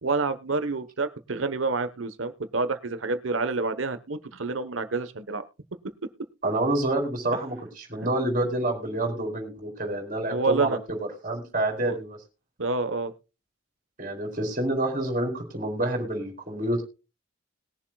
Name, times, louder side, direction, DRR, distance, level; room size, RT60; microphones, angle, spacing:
voice 1, 0.0-5.4 10.3-10.8 11.8-12.0 12.6-13.1, right 3 dB, 75° right, 11 dB, 1.2 m, -28 dB
voice 2, 6.4-12.2 14.0-16.8, right 1 dB, 40° right, 2 dB, 3.9 m, -28 dB
21.0 x 7.4 x 2.4 m, 0.30 s
head